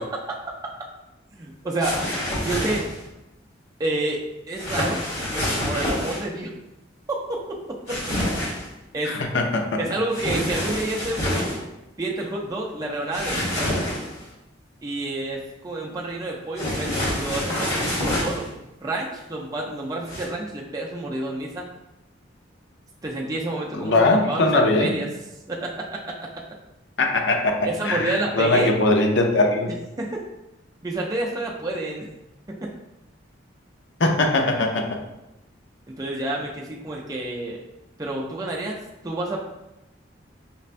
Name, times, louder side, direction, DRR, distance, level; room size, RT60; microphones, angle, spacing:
voice 1, 1.3-2.0 2.4-2.9 3.8-5.0 5.3-6.5 8.9-9.2 9.8-11.6 12.0-13.7 14.8-18.5 18.8-21.7 23.0-23.9 24.3-25.1 25.5-26.0 27.6-28.7 30.0-30.2 30.8-32.1 32.6-32.7 35.9-37.6 38.0-38.8 39.0-39.4, right 2 dB, 20° right, -2 dB, 0.4 m, -29 dB
sound 1, 1.8-3.0 4.6-6.2 7.9-8.7 10.1-11.6 13.1-14.2 16.6-18.5 20.0-20.2, left 1 dB, 35° left, 1.2 m, -27 dB
voice 2, 9.0-9.8 23.7-25.1 27.0-29.7 34.0-35.0, left 2 dB, 75° left, 3 dB, 0.5 m, -21 dB
5.2 x 2.2 x 2.5 m, 0.92 s
head